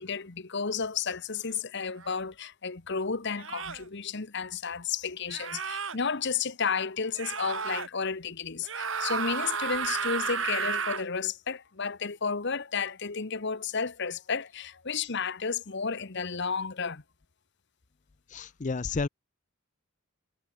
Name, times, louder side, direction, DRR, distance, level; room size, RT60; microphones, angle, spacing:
voice 1, 0.0-17.0, left 5 dB, 55° left, 1.1 m, -32 dB
sound 1, 2.0-2.2 3.4-3.8 5.3-6.0 7.1-7.9 8.6-11.1, right 6 dB, 65° right, 3.5 m, -32 dB
voice 2, 18.3-19.1, left 4 dB, 35° left, 0.5 m, -31 dB
head